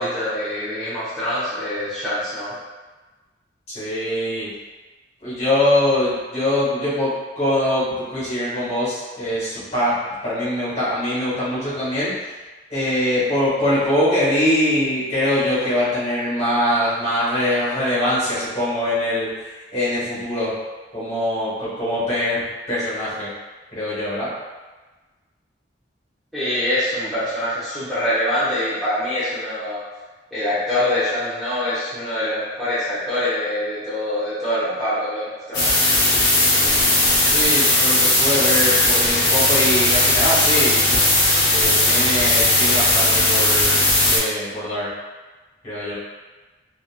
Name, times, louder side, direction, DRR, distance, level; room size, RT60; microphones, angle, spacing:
voice 1, 0.0-2.5 26.3-29.8 30.3-35.7, left 1 dB, ahead, -15 dB, 0.7 m, -24 dB
voice 2, 3.7-4.5 5.2-10.0 10.2-12.1 12.7-20.5 20.9-23.3 23.7-24.3 36.5-36.9 37.2-40.9 41.5-44.9 45.6-45.9, left 1 dB, 35° left, -11 dB, 1.3 m, -23 dB
sound 1, 35.5-44.2, left 1 dB, 55° left, 0.8 m, -17 dB
2.9 x 2.5 x 2.4 m, 1.2 s
head